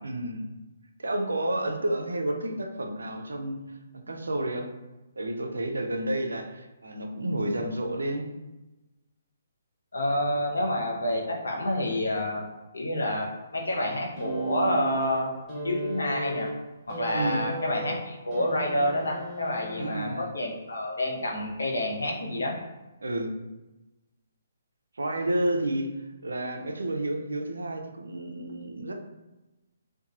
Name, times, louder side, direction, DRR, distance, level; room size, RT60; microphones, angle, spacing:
voice 1, 0.0-0.5 1.0-4.7 5.2-8.3 17.1-17.5 19.7-20.3 23.0-23.4 24.9-25.9 26.2-28.9, right 1 dB, 70° right, 4 dB, 0.4 m, -30 dB
voice 2, 9.9-13.3 13.5-15.3 15.6-16.5 16.9-22.6, left 1 dB, 70° left, 0 dB, 0.6 m, -28 dB
sound 1, 14.2-20.3 21.4-21.5, right 2 dB, 10° left, 0.9 m, -35 dB
2.8 x 2.2 x 2.4 m, 1.1 s
figure-of-eight pair, 135°, 0 cm